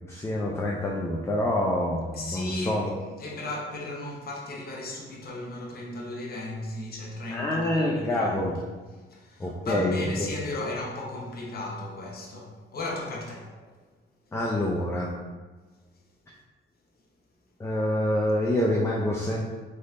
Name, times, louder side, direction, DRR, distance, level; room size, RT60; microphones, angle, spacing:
voice 1, 0.0-3.0 7.3-8.6 9.4-10.0 14.3-15.1 17.6-19.5, left 1 dB, 15° left, -2 dB, 0.5 m, -26 dB
voice 2, 2.1-2.8 3.2-8.6 9.1-13.5, left 2 dB, 50° left, -2 dB, 1.0 m, -35 dB
3.8 x 3.5 x 2.5 m, 1.3 s
cardioid pair, 90°, 20 cm